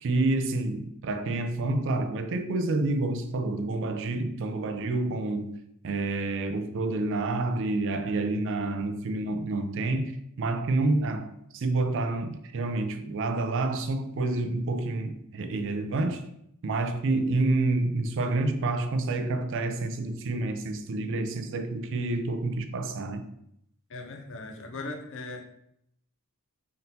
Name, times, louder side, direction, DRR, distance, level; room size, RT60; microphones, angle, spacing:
voice 1, 0.0-5.6 5.8-11.3 11.5-16.3 16.6-23.2, right 2 dB, 60° right, 0.4 m, -28 dB
voice 2, 23.9-25.4, left 3 dB, 60° left, 0.6 m, -38 dB
3.8 x 3.7 x 2.7 m
head